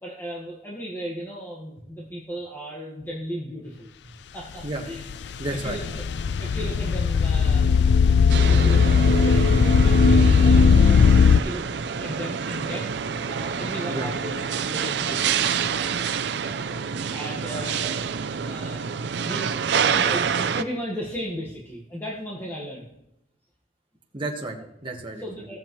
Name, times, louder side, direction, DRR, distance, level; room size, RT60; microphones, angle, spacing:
voice 1, 0.0-3.9 4.3-5.0 5.5-6.0 6.4-8.1 8.5-11.0 11.3-11.6 12.0-12.9 13.3-15.8 16.3-16.7 17.1-18.8 19.1-19.6 19.9-22.9 25.2-25.6, equal, 15° left, -4 dB, 1.5 m, -36 dB
sound 1, 4.6-11.4, left 5 dB, 70° left, 0.4 m, -18 dB
voice 2, 5.4-5.8 13.9-14.1 24.1-25.5, right 2 dB, 30° right, 0 dB, 1.5 m, -32 dB
sound 2, 8.3-20.6, right 6 dB, 70° right, 0.5 m, -27 dB
17.5 x 7.3 x 3.1 m, 0.82 s
head